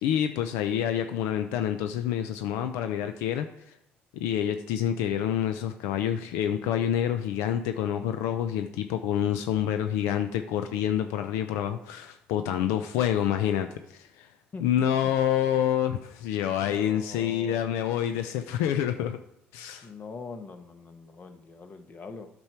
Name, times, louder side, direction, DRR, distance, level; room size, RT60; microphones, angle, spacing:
voice 1, 0.0-3.5 4.1-14.3 14.6-19.2 19.5-19.9, left 10 dB, 85° left, 8 dB, 0.5 m, -27 dB
voice 2, 14.5-15.2 16.6-17.6 19.8-22.3, left 4 dB, 40° left, 7 dB, 1.1 m, -43 dB
8.6 x 6.2 x 4.4 m, 0.77 s
supercardioid pair, 80°, 5 cm